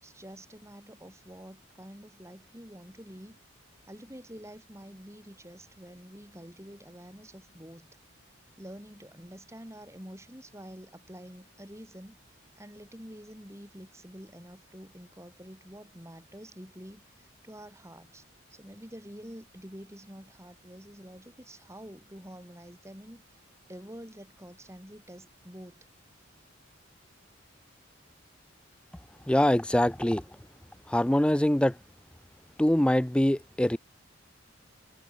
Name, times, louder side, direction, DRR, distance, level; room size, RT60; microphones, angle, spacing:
voice 1, 0.0-3.4 3.9-7.9 8.6-12.2 12.6-18.2 18.5-23.2 23.7-25.9, equal, 15° right, 6.2 m, -47 dB
voice 2, 29.3-30.2 30.9-31.7 32.6-33.8, left 1 dB, 5° left, 0.4 m, -23 dB
head